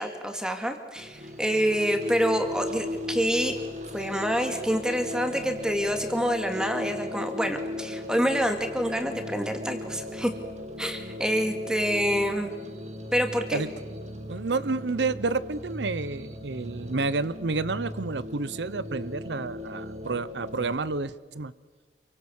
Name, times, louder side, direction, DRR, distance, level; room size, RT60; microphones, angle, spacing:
voice 1, 0.0-3.6 3.9-10.3 10.8-12.5 13.1-13.6, equal, 5° right, 5 dB, 2.4 m, -27 dB
sound 1, 1.0-20.8, left 1 dB, 40° right, 2.4 m, -37 dB
voice 2, 14.3-21.5, right 3 dB, 90° right, 17 dB, 0.8 m, -30 dB
28.0 x 24.5 x 7.2 m, 1.4 s
head